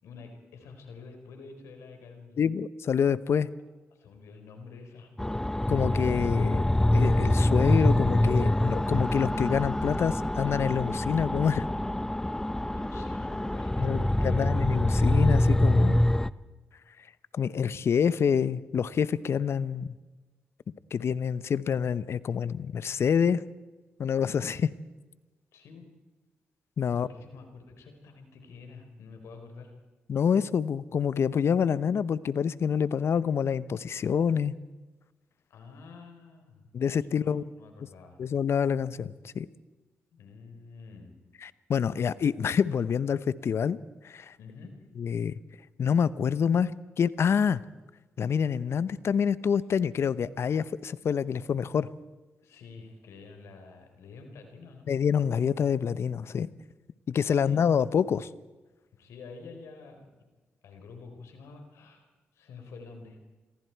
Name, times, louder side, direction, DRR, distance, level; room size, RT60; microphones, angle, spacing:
voice 1, 0.0-2.4 3.9-5.1 12.7-14.5 25.5-25.9 26.9-29.7 35.5-36.7 37.1-38.2 40.1-41.2 44.4-44.8 52.4-54.9 57.4-57.6 59.0-60.1 60.6-63.2, left 4 dB, 80° left, 5 dB, 4.3 m, -48 dB
voice 2, 2.4-3.5 5.7-6.6 6.9-11.7 13.8-16.0 17.3-19.9 20.9-23.4 24.0-24.7 26.8-27.1 30.1-34.5 36.7-37.4 38.2-39.5 41.4-43.8 44.0-44.4 45.0-45.4 45.8-47.6 48.2-51.9 54.9-56.5 57.1-58.3, left 7 dB, 65° left, 17 dB, 0.8 m, -27 dB
sound 1, 5.2-16.3, left 1 dB, 10° left, 0.7 m, -25 dB
29.0 x 22.5 x 4.6 m, 1.2 s
supercardioid pair, 50°, 5 cm